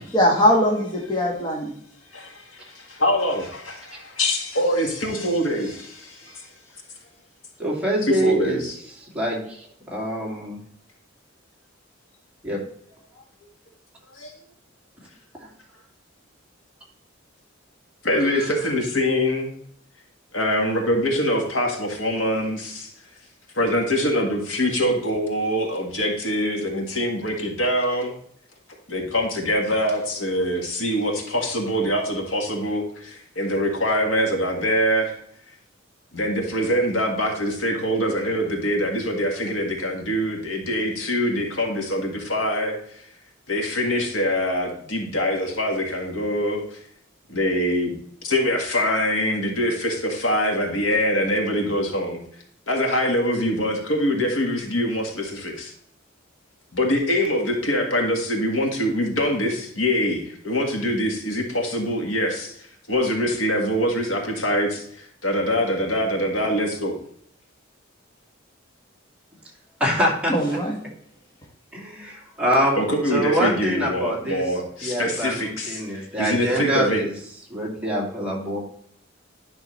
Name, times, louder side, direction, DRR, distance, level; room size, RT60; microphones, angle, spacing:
voice 1, 0.1-1.7 70.3-70.8, equal, 20° left, -3 dB, 1.5 m, -20 dB
voice 2, 2.1-6.5 8.0-8.7 14.1-14.3 18.0-19.5 20.3-22.9 23.5-28.1 28.9-35.2 36.1-43.0 43.5-46.8 47.3-48.0 48.2-52.2 52.7-55.7 56.7-67.0 72.8-77.0, equal, 75° left, 1 dB, 1.7 m, -24 dB
voice 3, 7.6-8.6 9.1-10.6 12.4-12.6 15.4-15.5 18.2-18.5 69.8-70.3 71.7-72.8 73.1-74.4 74.8-77.1 77.5-78.6, equal, 5° right, -4 dB, 2.4 m, -25 dB
11.0 x 5.9 x 3.2 m, 0.65 s
head